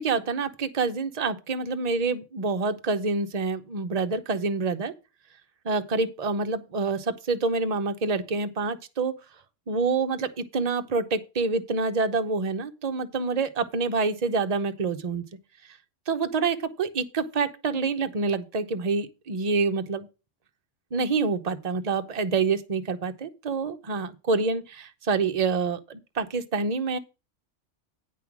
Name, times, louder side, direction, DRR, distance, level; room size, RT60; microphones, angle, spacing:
voice 1, 0.0-4.9 5.6-9.1 9.7-15.2 16.1-20.1 20.9-27.0, right 4 dB, 35° right, 0.8 m, -27 dB
9.4 x 5.6 x 6.1 m
omnidirectional pair, 1.3 m